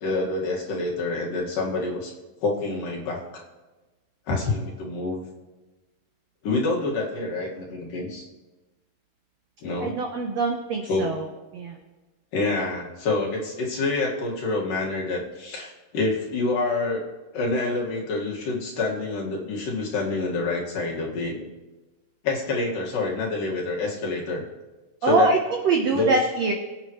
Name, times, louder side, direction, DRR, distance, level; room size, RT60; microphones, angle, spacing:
voice 1, 0.0-2.1 2.4-3.2 4.3-5.2 6.4-8.3 9.6-9.9 10.9-11.1 12.3-17.0 17.3-21.4 22.2-24.4 25.0-25.3 25.9-26.2, left 3 dB, 65° left, -3 dB, 3.4 m, -27 dB
voice 2, 9.8-11.2 11.5-11.8 25.0-26.5, right 3 dB, 75° right, 2 dB, 1.5 m, -23 dB
22.5 x 8.9 x 3.1 m, 1.2 s
omnidirectional pair, 4.4 m